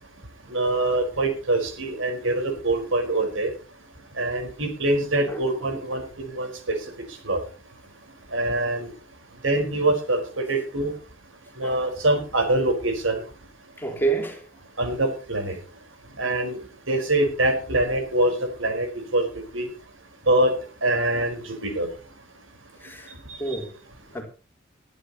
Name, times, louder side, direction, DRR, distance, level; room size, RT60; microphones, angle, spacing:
voice 1, 0.5-3.5 4.2-6.8 7.2-7.4 8.3-8.9 9.4-10.2 10.5-10.9 11.6-13.2 14.8-15.6 16.2-16.6 16.9-18.3 18.6-18.9 19.1-19.3 19.5-19.7 20.3-20.5 20.8-21.9 23.3-23.4, right 2 dB, 85° right, 4.5 m, -24 dB
voice 2, 13.8-14.4 22.8-23.1 23.4-23.7 24.1-24.2, right 3 dB, 10° left, 4.1 m, -28 dB
21.5 x 12.0 x 2.9 m
head